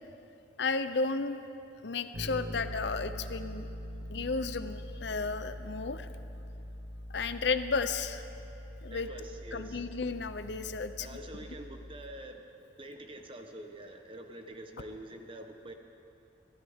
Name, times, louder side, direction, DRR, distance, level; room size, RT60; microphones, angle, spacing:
voice 1, 0.6-1.4 1.8-3.7 4.1-6.1 7.1-8.3 8.8-9.1 9.5-11.3, left 4 dB, 60° left, 10 dB, 0.6 m, -33 dB
Bass guitar, 2.1-12.0, equal, 65° right, 2.2 m, -43 dB
voice 2, 8.9-9.8 11.0-12.5 12.8-15.7, right 1 dB, 30° right, 5 dB, 1.0 m, -46 dB
24.0 x 16.0 x 3.6 m, 2.8 s
head